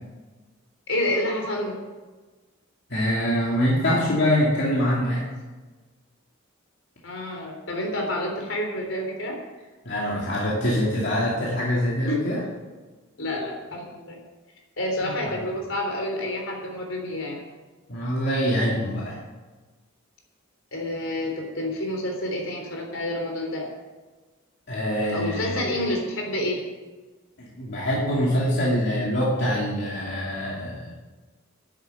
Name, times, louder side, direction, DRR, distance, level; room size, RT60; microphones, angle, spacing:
voice 1, 0.9-1.7 7.0-9.4 12.1-12.2 13.2-14.2 14.8-17.4 20.7-23.7 25.1-26.6, left 1 dB, 75° left, 1 dB, 3.7 m, -28 dB
voice 2, 2.9-5.2 9.8-12.4 15.0-15.3 17.9-19.2 24.7-25.6 27.4-30.9, equal, 55° left, -5 dB, 2.8 m, -24 dB
10.5 x 9.0 x 9.4 m, 1.3 s
head